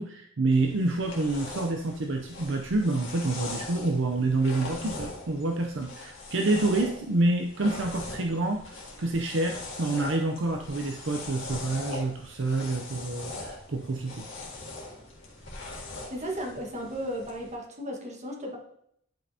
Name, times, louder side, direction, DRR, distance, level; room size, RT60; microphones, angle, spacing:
voice 1, 0.0-14.2, right 2 dB, 65° right, 3 dB, 0.6 m, -28 dB
sound 1, 0.5-17.5, left 2 dB, 65° left, 1.8 m, -41 dB
voice 2, 16.1-18.6, equal, 35° right, 0 dB, 1.5 m, -35 dB
10.5 x 5.3 x 2.8 m, 0.70 s
head